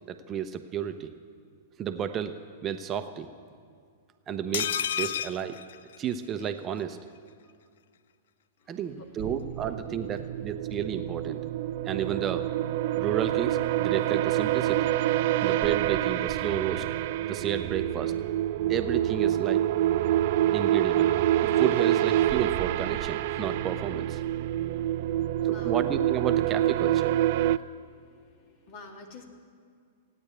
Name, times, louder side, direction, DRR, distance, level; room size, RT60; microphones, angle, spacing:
voice 1, 0.1-1.1 1.8-3.3 4.3-5.6 6.0-7.0 8.7-11.4 11.8-12.5 13.0-14.9 15.4-16.9 17.3-18.2 18.7-19.7 20.5-21.1 21.4-24.2 25.4-27.2, right 9 dB, 30° right, 9 dB, 0.8 m, -32 dB
sound 1, 4.5-6.5 6.8-6.9 7.2-7.3, left 9 dB, 65° left, 0.5 m, -31 dB
voice 2, 8.6-9.3 25.1-25.8 27.5-28.1 28.4-29.2, left 2 dB, 45° left, 2 dB, 2.5 m, -49 dB
sound 2, 9.2-27.6, right 13 dB, 55° right, 0.4 m, -27 dB
17.0 x 9.5 x 8.3 m, 2.1 s
figure-of-eight pair, 105°, 0 cm